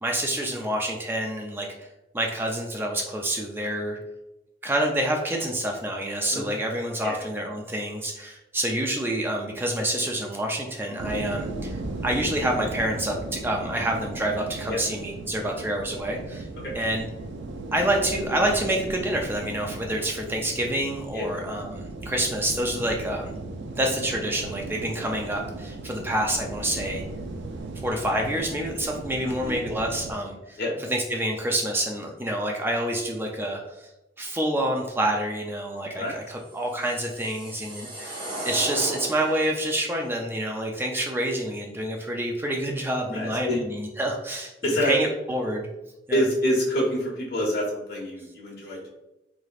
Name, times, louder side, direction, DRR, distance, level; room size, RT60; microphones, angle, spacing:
voice 1, 0.0-1.9 2.1-4.0 4.6-16.5 16.7-17.1 17.7-23.3 23.7-27.0 27.8-33.9 34.2-45.7 46.1-46.2, right 1 dB, 10° right, 1 dB, 0.4 m, -28 dB
sound 1, 11.0-30.1, right 2 dB, 80° right, 0.4 m, -36 dB
voice 2, 29.2-29.6 30.6-30.7 36.0-36.1 43.1-43.6 44.6-44.9 46.1-48.9, equal, 60° left, -4 dB, 1.3 m, -26 dB
sound 2, 36.5-39.7, right 1 dB, 30° right, 1.1 m, -36 dB
3.6 x 3.3 x 2.4 m, 0.95 s
head